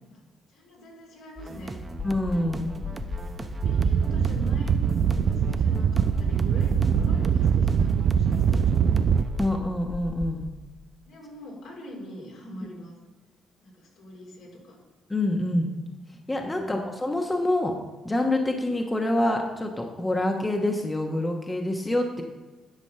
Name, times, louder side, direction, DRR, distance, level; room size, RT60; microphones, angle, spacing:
voice 1, 0.5-1.8 2.8-9.0 11.0-12.9 13.6-14.8 16.5-16.9, equal, 75° left, -2 dB, 3.5 m, -43 dB
sound 1, 1.4-9.6, right 2 dB, 25° right, 0.8 m, -39 dB
sound 2, 1.9-10.4, left 4 dB, 55° left, 1.5 m, -37 dB
voice 2, 2.0-2.7 9.4-10.5 15.1-15.7 16.3-17.8 18.0-22.2, left 1 dB, 15° left, 2 dB, 1.1 m, -26 dB
sound 3, 3.6-9.2, right 8 dB, 65° right, 0.3 m, -23 dB
11.0 x 4.2 x 6.7 m, 1.2 s
cardioid pair, 90°, 0 cm